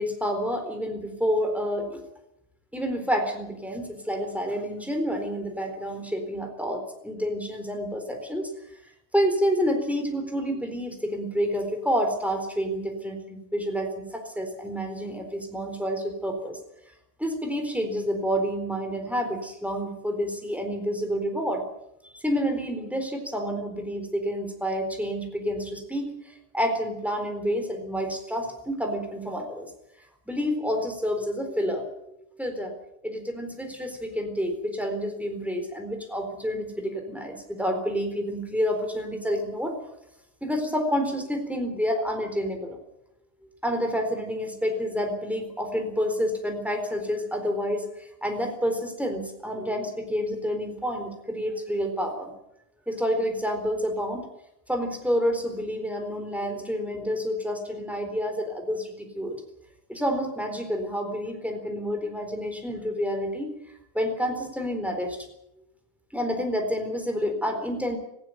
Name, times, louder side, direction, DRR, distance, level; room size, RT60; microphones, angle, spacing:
voice 1, 0.0-2.0 2.7-8.5 9.1-16.6 17.2-21.6 22.0-26.1 26.5-29.7 30.3-32.7 33.0-39.7 40.4-42.8 43.6-47.9 48.2-52.3 52.9-54.3 54.7-59.4 59.9-63.5 63.9-65.2 66.1-68.0, equal, ahead, 4 dB, 3.1 m, -29 dB
18.0 x 15.5 x 9.4 m, 0.82 s
omnidirectional pair, 5.0 m